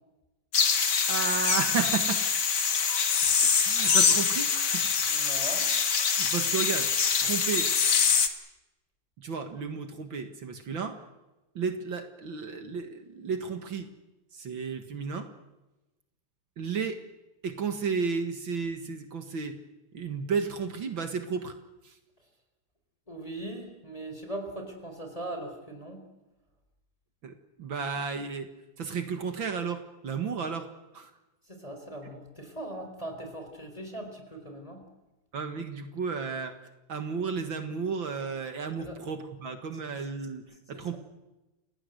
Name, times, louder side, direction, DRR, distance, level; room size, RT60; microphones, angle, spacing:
sound 1, 0.5-8.3, left 6 dB, 55° left, 2.2 m, -24 dB
voice 1, 1.1-2.2 3.2-5.1 6.1-6.9 7.2-7.7 9.2-11.0 11.6-13.9 14.3-15.3 16.6-17.0 17.4-19.6 19.9-21.6 21.8-21.9 27.2-28.5 28.8-31.1 35.3-36.6 36.9-40.4 40.7-41.0, right 5 dB, 65° right, 7 dB, 2.5 m, -33 dB
voice 2, 5.1-5.7 23.1-26.0 31.5-34.8 38.8-38.9, right 1 dB, 15° left, 4 dB, 4.4 m, -40 dB
29.0 x 18.5 x 8.1 m, 1.0 s
omnidirectional pair, 2.3 m